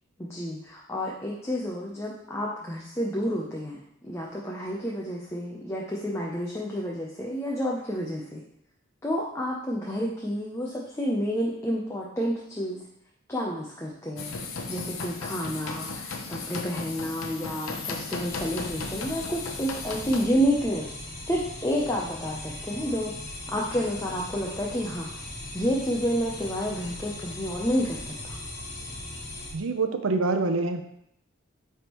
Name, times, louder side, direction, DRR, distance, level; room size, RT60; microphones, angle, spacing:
voice 1, 0.2-8.4 9.0-12.8 13.3-14.3 14.7-20.9 21.2-23.1 23.5-25.1 25.5-28.4, equal, 15° left, -3 dB, 0.6 m, -30 dB
sound 1, 14.2-20.3, left 4 dB, 80° left, 0.7 m, -36 dB
sound 2, 18.2-29.5, left 1 dB, 50° left, 1.3 m, -39 dB
voice 2, 29.5-30.8, right 3 dB, 75° right, 7 dB, 0.6 m, -25 dB
9.4 x 3.5 x 3.0 m, 0.75 s
head